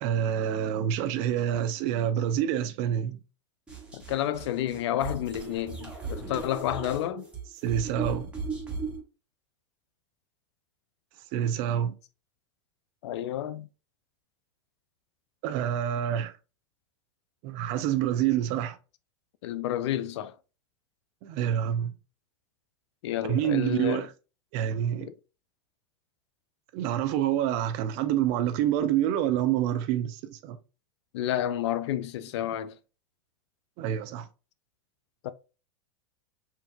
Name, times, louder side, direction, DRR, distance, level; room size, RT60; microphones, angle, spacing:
voice 1, 0.0-3.2 7.6-8.3 11.3-11.9 15.4-16.3 17.4-18.8 21.2-21.9 23.3-24.1 24.5-25.1 26.7-30.6 33.8-34.3, right 10 dB, 50° right, 0.7 m, -27 dB
sound 1, 3.7-9.0, right 4 dB, 5° right, 1.5 m, -37 dB
voice 2, 3.9-7.2 13.0-13.7 19.4-20.4 23.0-24.1 25.0-25.1 31.1-32.8 35.2-35.3, left 11 dB, 65° left, 0.5 m, -30 dB
4.4 x 2.7 x 2.3 m
hypercardioid pair, 105°, 16 cm